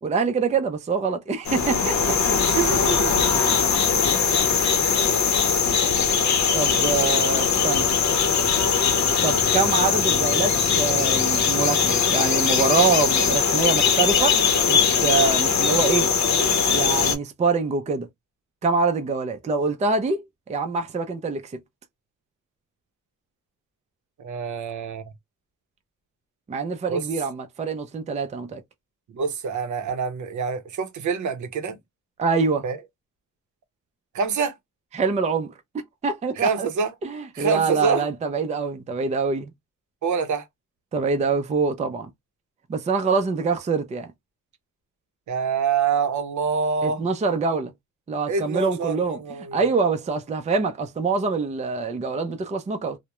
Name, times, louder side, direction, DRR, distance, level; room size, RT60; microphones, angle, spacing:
voice 1, 0.0-2.2 6.5-7.9 9.0-14.4 14.7-16.1 16.7-18.1 18.6-20.2 20.5-21.5 26.5-28.6 32.2-32.6 34.9-35.5 36.0-36.7 37.0-39.5 40.9-42.1 42.7-44.1 46.8-47.7 48.1-49.2 49.5-53.0, right 4 dB, 20° right, 0.4 m, -25 dB
sound 1, 1.5-17.2, left 6 dB, 60° left, 0.7 m, -21 dB
voice 2, 2.5-3.5 24.2-25.0 26.9-27.0 29.1-31.8 32.6-32.8 34.1-34.5 36.4-36.9 37.3-38.1 40.0-40.4 45.3-47.0 48.3-49.6, right 5 dB, 65° right, 0.6 m, -26 dB
2.2 x 2.1 x 2.9 m
cardioid pair, 100°, 32 cm